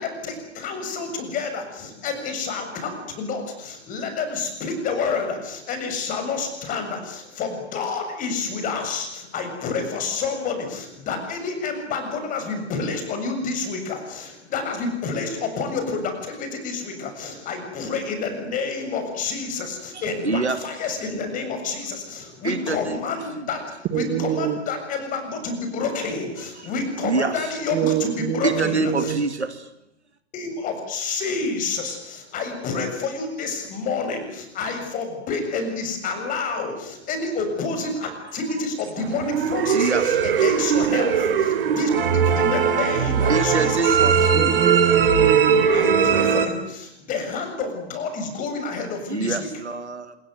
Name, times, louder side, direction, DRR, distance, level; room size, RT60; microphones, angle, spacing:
voice 1, 0.0-29.1 30.3-44.4 45.7-49.5, left 4 dB, 25° left, 6 dB, 7.2 m, -29 dB
voice 2, 20.2-20.6 22.4-23.0 23.3-23.4 27.0-27.3 28.4-29.7 39.7-40.2 43.3-44.6 49.1-50.2, right 3 dB, 75° right, 11 dB, 2.7 m, -25 dB
voice 3, 23.9-24.6 27.7-29.2 44.3-45.7, right 10 dB, 25° right, 7 dB, 2.4 m, -25 dB
sound 1, 39.0-46.5, right 7 dB, 55° right, 3.6 m, -20 dB
27.0 x 22.0 x 9.4 m, 0.81 s
figure-of-eight pair, 115°, 34 cm